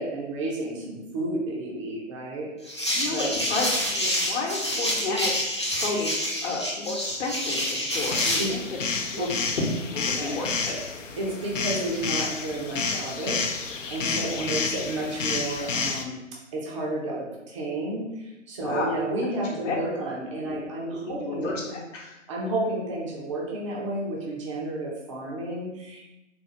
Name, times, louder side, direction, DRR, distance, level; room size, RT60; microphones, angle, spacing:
voice 1, 0.0-3.3 8.4-8.5 9.2-9.3 10.1-10.4 11.2-13.5 13.9-16.2 16.5-21.8 22.3-26.0, right 1 dB, 25° right, -4 dB, 0.6 m, -31 dB
sound 1, 2.7-8.6, equal, 25° left, 0.3 m, -28 dB
voice 2, 2.9-5.3 5.7-8.6 9.0-9.6 9.9-10.8 14.1-14.5 18.6-19.0 19.6-19.7 20.4-20.6 20.9-22.1, left 3 dB, 55° left, -4 dB, 1.0 m, -32 dB
sound 2, 8.0-16.0, left 4 dB, 70° left, 0.6 m, -30 dB
4.1 x 2.4 x 3.8 m, 0.95 s
figure-of-eight pair, 135°, 39 cm